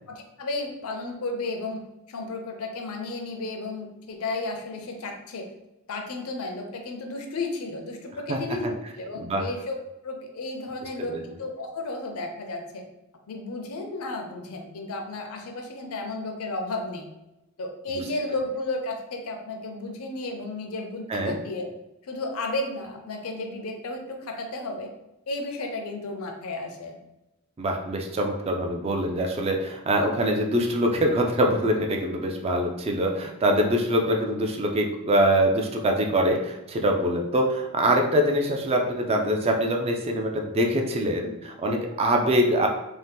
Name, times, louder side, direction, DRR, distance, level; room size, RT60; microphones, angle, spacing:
voice 1, 0.1-5.5 5.9-9.8 10.0-12.8 13.3-17.0 17.6-21.7 22.0-24.9 25.3-27.0, left 2 dB, 70° left, 3 dB, 0.5 m, -33 dB
voice 2, 27.6-42.7, equal, 25° right, 2 dB, 0.3 m, -24 dB
2.8 x 2.1 x 3.4 m, 0.92 s
head